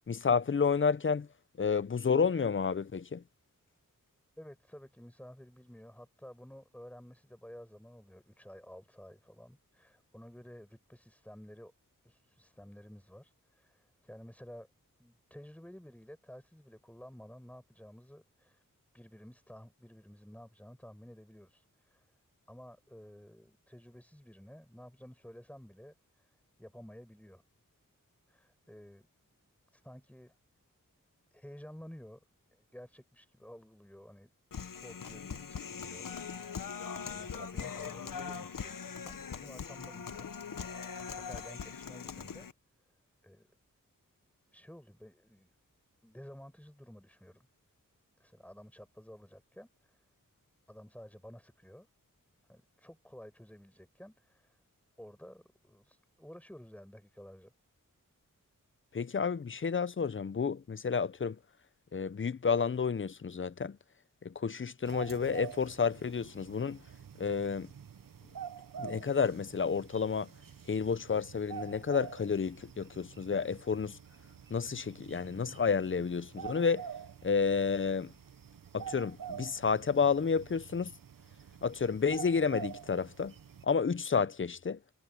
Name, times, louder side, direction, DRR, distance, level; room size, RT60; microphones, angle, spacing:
voice 1, 0.1-1.3 1.6-3.2 58.9-61.4 61.9-63.8 64.2-66.8 67.2-67.7 68.8-70.3 70.7-74.0 74.5-76.8 77.2-78.1 78.7-80.9 81.6-83.3 83.6-84.8, left 5 dB, 40° left, 0.6 m, -30 dB
voice 2, 4.4-11.7 12.0-14.7 15.0-18.6 18.9-22.1 22.5-27.4 28.3-29.1 29.7-30.4 31.3-34.3 34.8-36.5 37.0-40.3 41.1-42.5 43.2-43.5 44.5-45.5 46.0-47.5 48.2-50.0 50.7-51.9 52.5-54.6 55.0-57.5, equal, 5° left, 7.3 m, -52 dB
Human voice, 34.5-42.5, left 6 dB, 75° left, 1.1 m, -41 dB
sound 1, 64.9-83.7, right 8 dB, 80° right, 1.0 m, -47 dB
wide cardioid pair, 95°, 33 cm